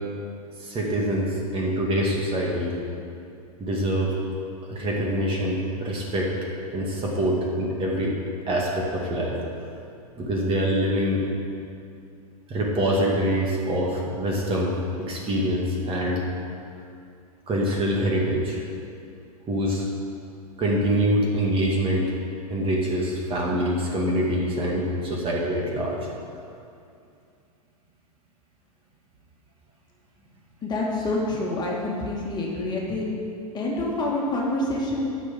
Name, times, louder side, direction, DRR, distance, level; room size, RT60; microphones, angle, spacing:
voice 1, 0.6-2.8 3.6-4.1 4.7-6.3 6.7-8.1 8.5-9.4 10.2-11.2 12.5-16.2 17.5-18.6 19.5-19.9 20.6-22.1 22.5-26.1, equal, 30° right, -2 dB, 2.1 m, -25 dB
voice 2, 30.6-33.1 33.5-35.1, left 2 dB, 20° left, -3 dB, 2.2 m, -27 dB
9.8 x 6.7 x 7.6 m, 2.5 s
hypercardioid pair, 110°, 19 cm